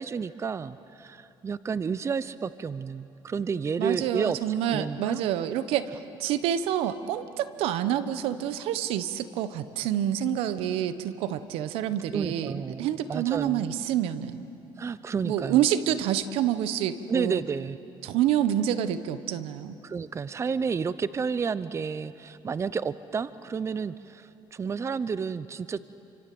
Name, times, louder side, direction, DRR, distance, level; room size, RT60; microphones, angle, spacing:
voice 1, 0.0-4.4 4.7-5.2 12.1-13.6 14.8-15.6 17.1-17.8 19.8-25.8, right 5 dB, 30° right, 16 dB, 0.6 m, -31 dB
voice 2, 3.8-5.9 6.2-14.5 15.2-17.4 18.0-19.8, right 10 dB, 90° right, 13 dB, 1.2 m, -27 dB
28.5 x 25.5 x 7.8 m, 2.9 s
cardioid pair, 100°, 10 cm